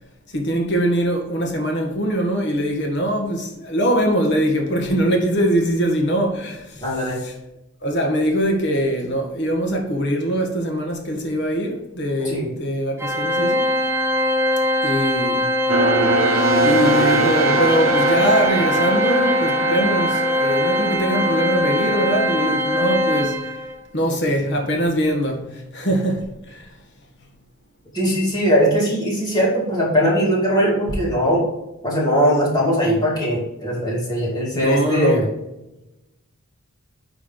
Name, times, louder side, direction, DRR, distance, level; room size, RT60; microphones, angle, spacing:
voice 1, 0.3-6.8 7.2-7.3 7.8-13.7 14.8-15.5 16.6-23.4 23.9-26.7 34.5-35.2, equal, 55° left, 1.5 m, -22 dB
voice 2, 6.8-7.2 12.2-12.5 27.9-31.5 31.8-35.3, equal, 20° left, 2.3 m, -20 dB
Organ, 13.0-23.7, left 1 dB, 10° right, 0.7 m, -21 dB
sound 1, 15.7-22.9, right 3 dB, 85° right, 0.9 m, -23 dB
9.8 x 3.5 x 3.9 m
head